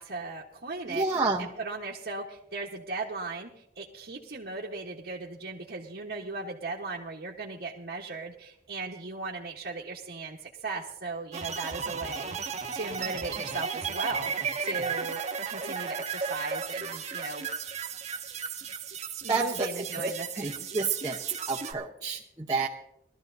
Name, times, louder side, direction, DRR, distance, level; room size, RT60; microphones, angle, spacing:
voice 1, 0.0-12.4 12.7-17.4 19.2-20.7, right 3 dB, 65° right, -4 dB, 1.3 m, -37 dB
voice 2, 0.9-1.5 19.3-19.7 20.0-20.1 20.4-21.2 21.5-22.7, right 3 dB, 20° right, -4 dB, 0.9 m, -29 dB
sound 1, 11.3-21.7, right 6 dB, 40° right, 1.2 m, -35 dB
20.0 x 13.0 x 2.7 m, 0.79 s
head